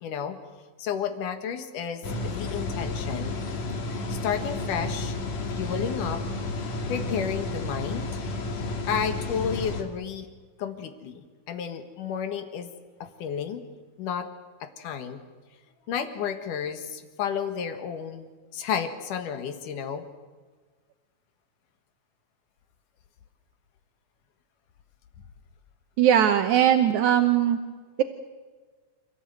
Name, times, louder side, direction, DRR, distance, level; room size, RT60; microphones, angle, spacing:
voice 1, 0.0-0.4 0.8-3.4 4.1-5.2 5.5-6.2 6.9-8.1 8.9-10.3 10.6-12.7 13.0-13.6 14.0-14.3 14.6-15.2 15.9-18.3 18.5-20.0, left 7 dB, 90° left, 8 dB, 3.2 m, -31 dB
sound 1, 2.0-9.8, left 2 dB, 65° left, 3.4 m, -31 dB
voice 2, 26.0-27.6, right 10 dB, 75° right, 7 dB, 2.3 m, -20 dB
29.0 x 15.5 x 9.2 m, 1.4 s
omnidirectional pair, 3.5 m